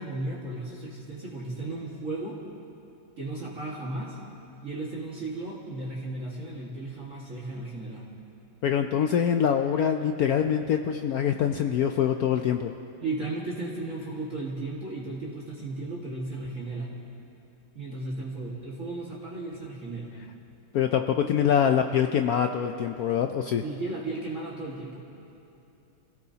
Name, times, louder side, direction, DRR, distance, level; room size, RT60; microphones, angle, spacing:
voice 1, 0.0-2.4 3.2-4.2 4.6-8.1 13.0-16.9 17.8-20.2 23.6-25.0, right 2 dB, 40° right, -5 dB, 2.1 m, -35 dB
voice 2, 8.6-12.7 20.7-23.6, left 8 dB, 75° left, 6 dB, 0.8 m, -24 dB
29.5 x 17.0 x 2.9 m, 2.8 s
omnidirectional pair, 2.1 m